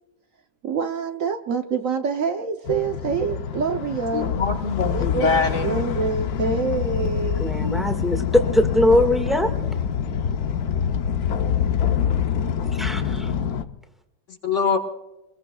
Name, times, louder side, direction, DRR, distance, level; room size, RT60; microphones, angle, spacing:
voice 1, 0.6-4.3 4.9-7.5, right 5 dB, 60° right, 7 dB, 1.1 m, -26 dB
sound 1, 2.7-13.6, left 8 dB, 70° left, 1.3 m, -25 dB
voice 2, 4.1-5.8 14.4-14.8, left 4 dB, 50° left, 4 dB, 1.6 m, -23 dB
voice 3, 7.4-9.5 12.6-13.3, left 1 dB, ahead, 6 dB, 1.5 m, -21 dB
25.5 x 21.0 x 2.3 m, 0.97 s
omnidirectional pair, 1.8 m